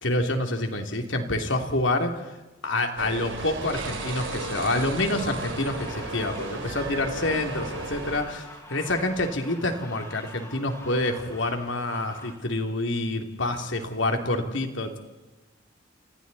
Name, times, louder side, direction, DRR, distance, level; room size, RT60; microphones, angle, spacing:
voice 1, 0.0-2.3 2.6-15.0, left 2 dB, 75° left, 4 dB, 3.0 m, -27 dB
sound 1, 3.0-8.2, right 2 dB, 80° right, 3.5 m, -34 dB
sound 2, 3.3-12.3, left 1 dB, 15° left, 5.8 m, -45 dB
29.5 x 27.0 x 4.2 m, 1.2 s
head